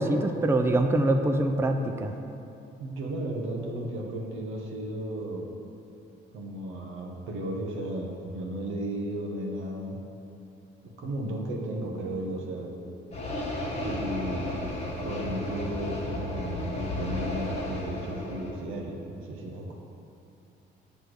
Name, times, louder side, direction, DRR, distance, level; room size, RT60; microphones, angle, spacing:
voice 1, 0.0-2.1, right 1 dB, 10° right, 5 dB, 0.4 m, -24 dB
voice 2, 2.8-5.5 6.3-10.0 10.8-12.8 13.8-14.5 15.0-19.7, right 1 dB, 85° right, 0 dB, 1.0 m, -34 dB
sound 1, 13.1-18.5, left 1 dB, 35° left, 1.5 m, -33 dB
7.9 x 3.4 x 6.2 m, 2.7 s
cardioid pair, 90°, 20 cm